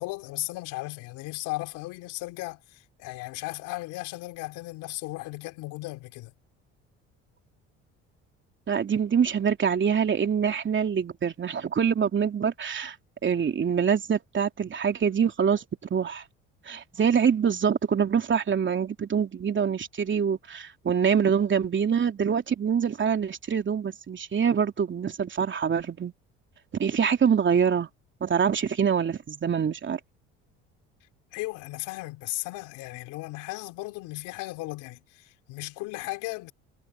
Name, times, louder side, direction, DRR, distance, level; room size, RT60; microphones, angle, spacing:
voice 1, 0.0-6.3 31.3-36.5, left 21 dB, 75° left, 4.0 m, -36 dB
voice 2, 8.7-12.9 13.2-15.6 15.9-16.2 16.7-26.1 26.8-27.9 28.2-30.0, right 7 dB, 40° right, 3.1 m, -25 dB
supercardioid pair, 70°, 30 cm